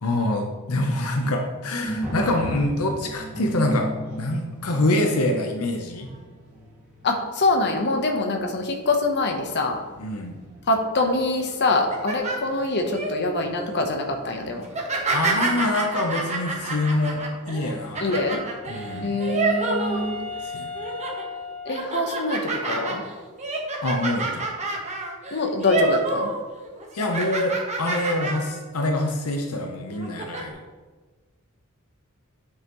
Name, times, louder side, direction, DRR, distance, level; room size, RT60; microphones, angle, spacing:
voice 1, 0.0-6.1 10.0-10.4 15.1-18.2 18.7-19.2 20.4-20.7 23.8-24.5 26.9-30.6, left 1 dB, 75° left, 3 dB, 0.8 m, -25 dB
sound 1, 1.8-20.4, right 1 dB, 10° right, 2.1 m, -38 dB
voice 2, 7.0-9.8 10.7-14.7 18.0-18.4 19.0-20.2 21.6-23.0 25.3-26.3, left 2 dB, 50° left, 3 dB, 0.9 m, -24 dB
sound 2, 11.7-13.1 13.6-13.9 14.7-20.4 20.7-21.2 21.7-26.4 26.6-28.6 29.0-29.1 29.9-30.4, right 3 dB, 30° right, 1.2 m, -28 dB
Wind instrument woodwind instrument, 17.7-22.5, left 4 dB, 70° right, 1.4 m, -37 dB
9.5 x 5.6 x 3.1 m, 1.3 s
head